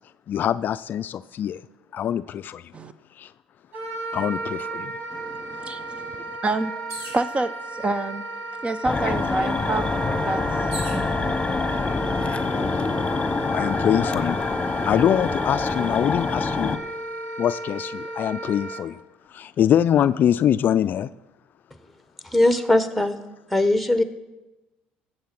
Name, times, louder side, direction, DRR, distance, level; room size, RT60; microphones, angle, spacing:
voice 1, 0.3-1.6 1.9-2.6 4.1-4.7 13.5-14.4 14.9-16.8 17.4-18.9 19.4-21.1, left 10 dB, 50° left, 14 dB, 0.3 m, -23 dB
Wind instrument woodwind instrument, 3.7-18.8, right 2 dB, 60° right, 4.0 m, -34 dB
voice 2, 5.1-6.7 7.1-8.2 8.6-9.9 10.2-10.7 10.9-11.4, right 2 dB, 30° right, 13 dB, 0.7 m, -28 dB
sound 1, 6.9-7.3 8.2-8.3 8.7-11.0 11.8-12.3, right 1 dB, 80° right, 3.1 m, -39 dB
sound 2, 8.8-16.8, left 4 dB, 25° left, 1.1 m, -26 dB
voice 3, 22.3-23.2 23.5-24.0, left 1 dB, ahead, 10 dB, 1.2 m, -20 dB
14.5 x 7.8 x 5.9 m, 1.1 s
supercardioid pair, 75°, 4 cm